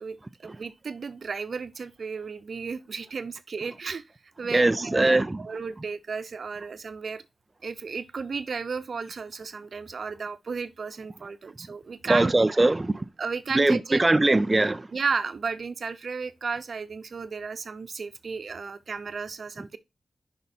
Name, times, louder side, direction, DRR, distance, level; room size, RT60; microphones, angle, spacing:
voice 1, 0.0-4.0 4.4-7.2 7.6-12.3 13.2-14.0 14.3-14.4 14.9-19.8, right 5 dB, 70° right, 0.8 m, -33 dB
voice 2, 4.5-5.4 12.1-13.0 13.6-14.9, right 2 dB, 25° right, 0.3 m, -21 dB
9.6 x 5.6 x 2.7 m
wide cardioid pair, 80°, 0 cm